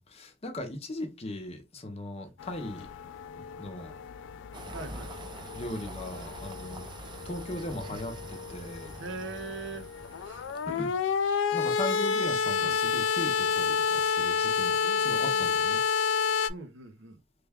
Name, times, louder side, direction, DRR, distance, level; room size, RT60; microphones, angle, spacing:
voice 1, 0.0-2.9 3.6-3.9 5.5-6.9 7.2-8.9 10.7-10.9 11.5-15.8, left 1 dB, 35° left, 0.7 m, -38 dB
sound 1, 2.4-16.5, left 6 dB, 85° left, 0.3 m, -30 dB
sound 2, 4.5-11.5, right 2 dB, 25° right, 0.4 m, -46 dB
voice 2, 4.7-5.1 9.0-9.9 10.2-10.5 12.6-12.8 14.8-15.6 16.5-17.2, right 3 dB, 75° right, 0.6 m, -41 dB
3.3 x 2.2 x 3.4 m
head